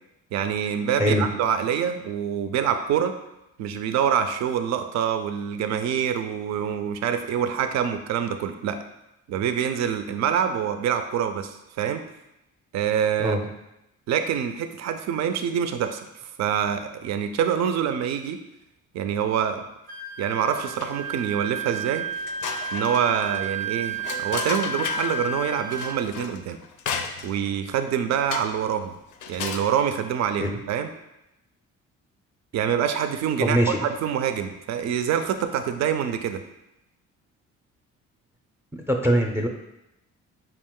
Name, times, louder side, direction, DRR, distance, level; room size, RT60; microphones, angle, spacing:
voice 1, 0.3-3.2 3.6-8.8 9.3-12.0 12.7-13.4 14.1-16.0 16.4-18.4 18.9-19.7 20.2-22.1 22.7-26.6 27.2-28.9 29.3-30.9 32.5-36.4, right 8 dB, 65° right, 8 dB, 0.5 m, -25 dB
Wind instrument woodwind instrument, 19.9-26.1, right 4 dB, 90° right, 0.8 m, -32 dB
sound 1, 20.6-21.2 21.6-21.7 22.1-25.2 25.7-27.5 28.3-28.7 29.1-29.7, left 6 dB, 85° left, 0.5 m, -34 dB
voice 2, 33.4-33.8 38.7-39.5, equal, 10° right, 2 dB, 0.5 m, -22 dB
5.3 x 2.4 x 3.6 m, 0.89 s
cardioid pair, 90°, 30 cm